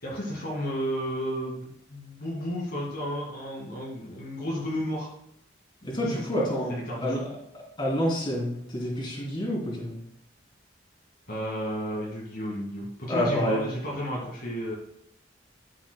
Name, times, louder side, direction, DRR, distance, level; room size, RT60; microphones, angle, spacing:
voice 1, 0.0-5.1 6.0-6.2 6.7-7.2 11.3-14.7, equal, 50° left, -5 dB, 2.2 m, -32 dB
voice 2, 5.8-6.7 7.0-7.3 7.8-10.0 13.1-13.7, equal, 25° left, -4 dB, 3.2 m, -28 dB
12.0 x 8.0 x 2.3 m, 0.74 s
head